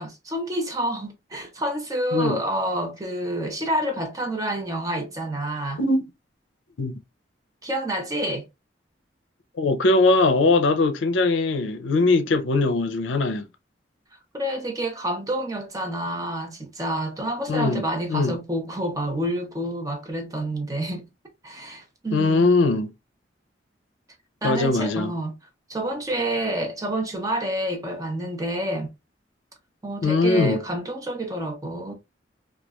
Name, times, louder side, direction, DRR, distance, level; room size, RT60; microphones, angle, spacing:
voice 1, 0.0-5.8 7.6-8.4 14.3-21.1 21.4-22.5 24.4-25.3 25.7-28.9 29.8-31.9, right 1 dB, 20° right, 0.6 m, -28 dB
voice 2, 9.6-13.5 17.5-17.8 18.1-18.3 22.1-22.9 24.4-25.1 30.0-30.6, left 3 dB, 80° left, 0.5 m, -21 dB
3.0 x 2.3 x 2.3 m
head